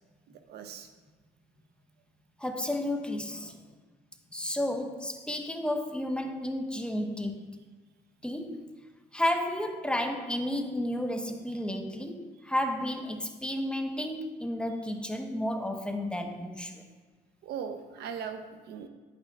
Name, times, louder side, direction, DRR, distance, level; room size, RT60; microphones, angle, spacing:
voice 1, 0.5-0.9 17.4-18.9, right 7 dB, 75° right, 7 dB, 1.0 m, -39 dB
voice 2, 2.4-3.6 4.3-7.6 8.2-8.8 9.1-16.8, left 1 dB, 5° left, 5 dB, 0.9 m, -32 dB
10.5 x 8.7 x 3.5 m, 1.4 s
cardioid pair, 110°, 17 cm